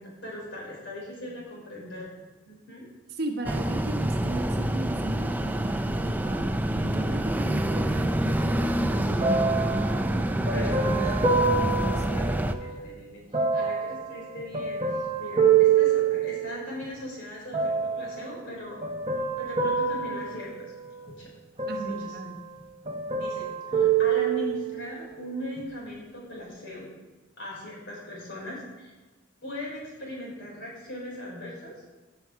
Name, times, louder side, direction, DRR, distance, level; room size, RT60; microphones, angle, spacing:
voice 1, 0.0-2.1 2.5-2.9 10.1-11.1 12.1-13.2 13.5-18.8 19.3-20.7 21.0-21.3 21.9-22.2 23.2-26.9 27.4-28.9 29.4-31.8, left 1 dB, 60° left, -3 dB, 4.1 m, -39 dB
voice 2, 3.1-11.1 11.5-12.1 21.7-22.4, right 1 dB, 50° right, 4 dB, 1.1 m, -35 dB
sound 1, 3.4-12.5, right 1 dB, 10° right, 0.4 m, -27 dB
sound 2, 9.2-12.8 13.3-16.8 17.5-18.2 18.8-21.1 21.6-22.6 22.9-24.9 25.6-25.7, right 6 dB, 30° right, 1.0 m, -26 dB
15.5 x 5.9 x 4.7 m, 1.3 s
head